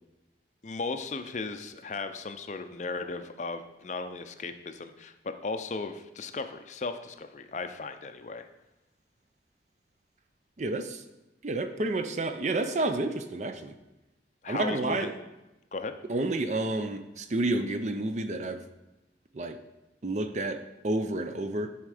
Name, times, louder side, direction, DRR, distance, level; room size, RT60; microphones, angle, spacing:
voice 1, 0.6-5.1 5.4-8.5 14.4-15.2 15.7-15.9, left 3 dB, 40° left, 8 dB, 0.5 m, -36 dB
voice 2, 10.6-11.0 11.4-13.7 14.5-15.1 16.1-18.6 19.3-19.6 20.0-21.7, right 2 dB, 40° right, 8 dB, 0.5 m, -30 dB
10.5 x 4.3 x 4.9 m, 1.0 s
head